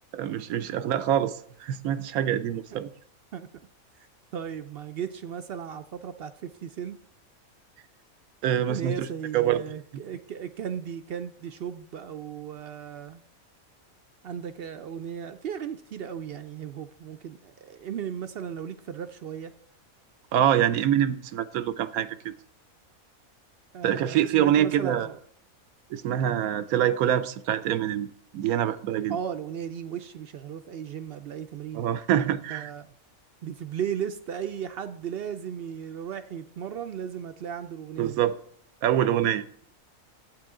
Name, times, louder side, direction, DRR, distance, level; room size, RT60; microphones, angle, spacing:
voice 1, 0.1-2.9 8.4-9.1 9.3-9.6 20.3-22.3 23.8-25.1 25.9-28.1 28.3-29.2 31.7-32.7 38.0-38.4 38.8-39.5, right 10 dB, 90° right, 1.1 m, -25 dB
voice 2, 4.0-7.0 8.6-13.2 14.2-19.5 23.7-25.2 29.1-31.9 32.5-32.9 33.4-38.2, right 8 dB, 65° right, 0.6 m, -36 dB
11.5 x 8.3 x 3.7 m
omnidirectional pair, 1.5 m